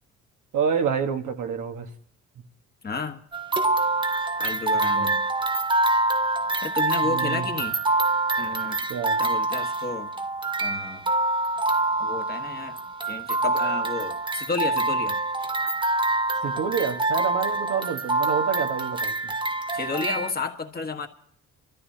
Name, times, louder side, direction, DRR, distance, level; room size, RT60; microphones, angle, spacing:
voice 1, 0.5-1.9 4.7-5.2 7.0-7.5 8.9-9.2 16.4-19.3, right 6 dB, 80° right, 1.4 m, -28 dB
voice 2, 2.8-3.2 4.4-5.2 6.6-7.8 8.4-8.8 9.2-10.1 10.6-11.1 12.0-12.7 13.0-15.2 19.7-21.1, left 4 dB, 30° left, 1.4 m, -32 dB
sound 1, 3.3-20.3, right 2 dB, 15° right, 0.7 m, -25 dB
23.0 x 13.5 x 2.8 m
cardioid pair, 90°, 30 cm